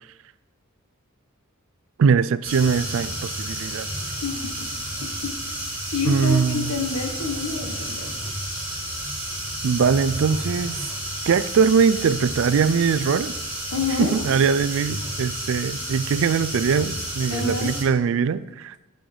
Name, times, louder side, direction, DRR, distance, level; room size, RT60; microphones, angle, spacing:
voice 1, 2.0-3.9 6.0-6.7 9.6-10.8 11.3-13.4 14.0-18.8, right 6 dB, 60° right, 17 dB, 0.3 m, -21 dB
sound 1, 2.4-17.8, right 1 dB, 10° right, 2.0 m, -31 dB
voice 2, 4.2-4.7 5.2-5.3 5.9-8.1 13.7-14.2 17.3-17.7, left 4 dB, 90° left, 3 dB, 1.1 m, -28 dB
6.9 x 6.1 x 4.9 m, 1.1 s
head